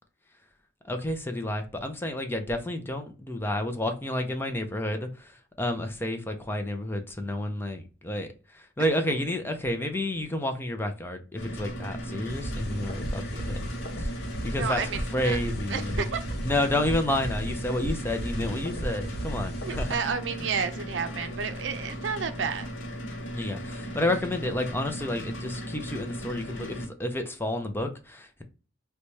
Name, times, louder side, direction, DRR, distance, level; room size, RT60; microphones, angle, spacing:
voice 1, 0.8-13.6 14.0-14.1 14.4-14.8 15.1-16.1 16.4-19.9 23.3-28.4, left 1 dB, 10° left, 0.5 m, -30 dB
sound 1, 11.4-26.9, equal, 85° left, 0.9 m, -37 dB
sound 2, 12.3-20.0, equal, 55° left, 0.7 m, -35 dB
voice 2, 14.6-15.4 15.7-16.2 19.6-22.7, right 6 dB, 75° right, 0.5 m, -31 dB
4.0 x 2.2 x 3.1 m
head